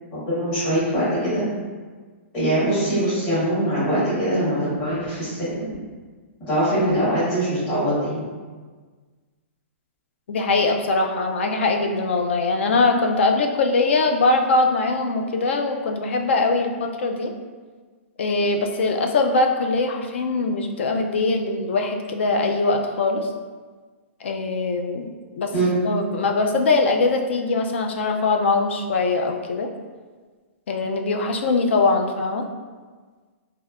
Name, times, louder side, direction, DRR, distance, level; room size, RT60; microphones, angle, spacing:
voice 1, 0.1-1.4 2.3-5.7 6.5-8.2 25.5-25.7, right 1 dB, 20° left, -14 dB, 1.4 m, -22 dB
voice 2, 10.3-17.3 18.2-23.3 24.2-25.5 25.8-29.7 30.7-32.4, left 3 dB, 60° left, 4 dB, 0.4 m, -22 dB
3.2 x 2.7 x 2.4 m, 1.4 s
hypercardioid pair, 175°, 7 cm